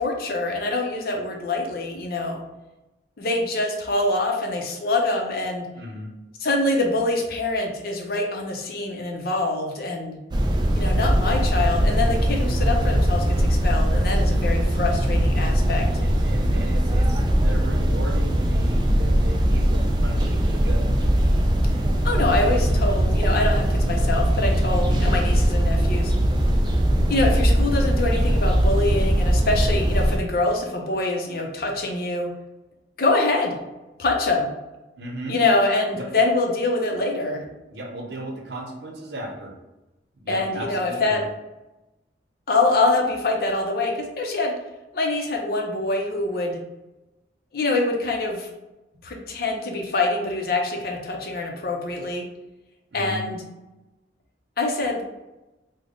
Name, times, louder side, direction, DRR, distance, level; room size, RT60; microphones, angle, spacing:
voice 1, 0.0-2.4 3.2-5.7 6.4-10.2 10.7-15.9 22.0-26.1 27.1-32.3 33.0-33.6 34.0-34.5 35.3-37.4 40.3-41.2 42.5-44.5 44.9-46.6 47.5-48.5 49.0-52.2 52.9-53.4 54.6-55.0, left 2 dB, 55° left, 1 dB, 0.6 m, -25 dB
voice 2, 5.8-6.1 16.0-21.0 35.0-35.4 35.9-36.1 37.7-39.5 40.2-41.2 52.9-53.2, right 1 dB, 70° right, 2 dB, 0.7 m, -35 dB
sound 1, 10.3-30.2, equal, 25° right, 0.3 m, -20 dB
3.4 x 2.1 x 3.7 m, 1.0 s
head